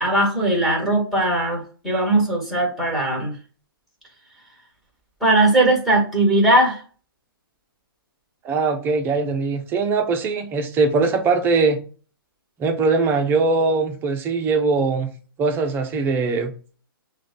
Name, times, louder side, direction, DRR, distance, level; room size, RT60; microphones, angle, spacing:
voice 1, 0.0-3.3 5.2-6.8, right 1 dB, ahead, 1.3 m, -19 dB
voice 2, 8.4-11.8 12.6-15.1 15.4-16.5, right 4 dB, 20° right, 0.5 m, -21 dB
6.0 x 2.2 x 2.5 m
hypercardioid pair, 135°, 12 cm